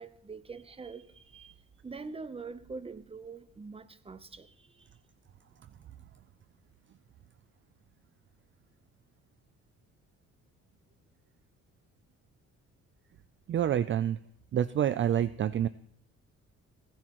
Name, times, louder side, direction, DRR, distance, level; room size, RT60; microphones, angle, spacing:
voice 1, 0.0-4.9, right 4 dB, 20° right, 14 dB, 0.8 m, -44 dB
voice 2, 13.5-14.2 14.5-15.7, right 10 dB, 40° right, 16 dB, 0.4 m, -27 dB
17.0 x 9.9 x 3.0 m, 0.67 s
cardioid pair, 90°, 30 cm